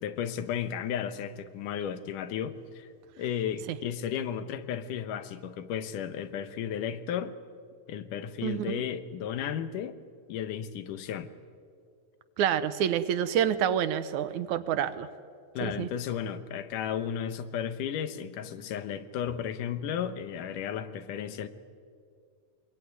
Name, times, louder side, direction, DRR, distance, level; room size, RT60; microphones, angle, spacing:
voice 1, 0.0-2.9 3.2-7.4 7.9-9.9 10.3-11.3 15.5-21.5, left 8 dB, 85° left, 11 dB, 2.7 m, -34 dB
voice 2, 8.4-8.8 12.4-15.1 15.6-15.9, right 9 dB, 75° right, 13 dB, 2.2 m, -28 dB
24.5 x 21.0 x 9.5 m, 2.3 s
omnidirectional pair, 3.6 m